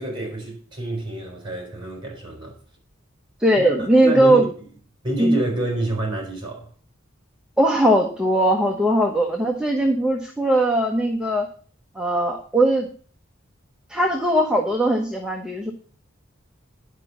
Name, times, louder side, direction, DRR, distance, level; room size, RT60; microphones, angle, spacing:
voice 1, 0.0-2.6 3.6-4.5 5.0-6.7, right 1 dB, 25° right, 4.5 m, -28 dB
voice 2, 3.4-4.4 5.2-5.4 7.6-11.5 11.9-12.9 13.9-15.7, right 1 dB, 5° right, 1.1 m, -19 dB
10.5 x 5.2 x 7.2 m
head